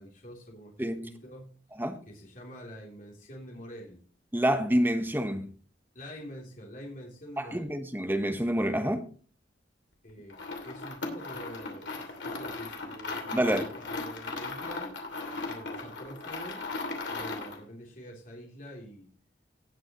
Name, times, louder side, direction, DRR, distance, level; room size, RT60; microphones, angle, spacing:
voice 1, 0.0-1.6 2.0-4.0 5.9-7.7 10.0-14.9 15.4-16.7 17.1-19.1, equal, 45° left, 3.3 m, -46 dB
voice 2, 4.3-5.5 7.4-9.0 13.3-13.6, equal, 10° right, 1.2 m, -27 dB
sound 1, 10.3-17.6, left 3 dB, 70° left, 2.7 m, -37 dB
18.5 x 6.2 x 3.1 m
head